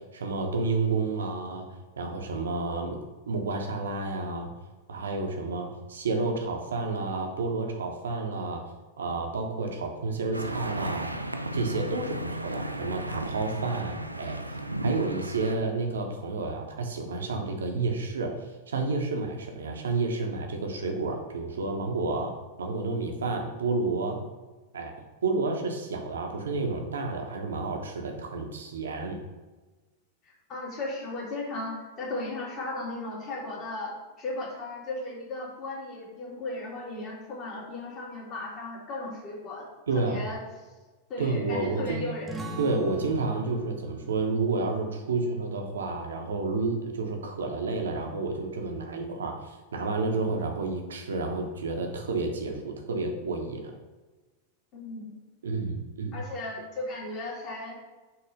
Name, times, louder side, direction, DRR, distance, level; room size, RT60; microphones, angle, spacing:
voice 1, 0.1-1.7 2.0-3.0 3.3-4.5 4.9-8.6 9.0-11.1 11.5-14.6 14.8-18.3 18.7-22.3 22.6-24.2 24.7-24.9 25.2-29.2 39.9-40.2 41.2-42.0 42.6-53.7 55.4-56.2, right 3 dB, 65° right, 3 dB, 0.9 m, -30 dB
innstadt bells, 10.3-15.6, right 1 dB, 85° right, 0.3 m, -34 dB
voice 2, 30.2-39.7 40.0-40.4 41.1-42.4 54.7-55.1 56.1-57.8, left 2 dB, 35° left, -3 dB, 2.0 m, -36 dB
sound 1, 42.3-47.5, right 1 dB, 15° right, 0.8 m, -43 dB
5.8 x 3.2 x 5.2 m, 1.2 s
figure-of-eight pair, 90°, 0 cm